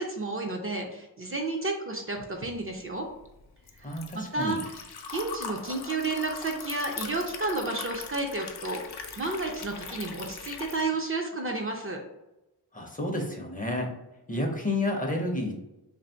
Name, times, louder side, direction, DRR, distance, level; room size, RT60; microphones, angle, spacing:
voice 1, 0.0-3.1 3.8-3.9 4.1-4.7 5.1-8.8 9.2-12.0, right 2 dB, 35° right, 1 dB, 0.4 m, -31 dB
Liquid, 2.6-10.9, left 5 dB, 70° left, 0.6 m, -40 dB
voice 2, 3.8-4.6 12.7-13.9 14.3-15.6, left 1 dB, 20° left, 1 dB, 0.5 m, -30 dB
2.9 x 2.6 x 4.3 m, 0.95 s
wide cardioid pair, 150°, 40 cm